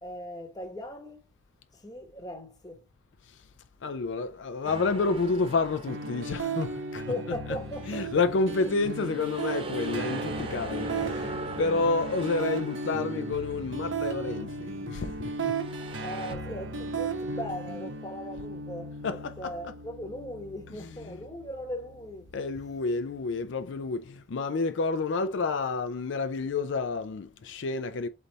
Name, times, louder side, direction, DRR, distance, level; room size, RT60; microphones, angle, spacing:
voice 1, 0.0-1.2 1.7-2.8 7.1-8.5 16.0-19.0 19.4-22.3, left 1 dB, 20° left, 0.9 m, -39 dB
voice 2, 3.8-15.5 19.0-19.6 20.7-21.2 22.3-28.1, left 3 dB, 80° left, 0.4 m, -30 dB
sound 1, 4.6-7.2 7.7-14.1 15.3-16.4, right 3 dB, 30° right, 0.6 m, -41 dB
sound 2, 5.9-23.8, right 3 dB, 85° right, 0.8 m, -36 dB
4.0 x 3.3 x 3.9 m
head